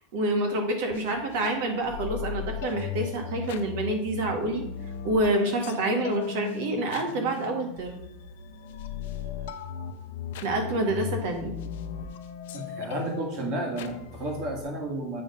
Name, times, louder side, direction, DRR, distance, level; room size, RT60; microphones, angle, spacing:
voice 1, 0.1-4.6 5.0-8.0 10.4-11.5, right 1 dB, 60° right, 4 dB, 1.5 m, -27 dB
sound 1, 0.9-14.6, left 8 dB, 75° left, 0.6 m, -37 dB
voice 2, 12.5-15.2, right 2 dB, 35° right, 2 dB, 1.6 m, -32 dB
7.6 x 3.6 x 5.2 m, 0.79 s
supercardioid pair, 170°, 0 cm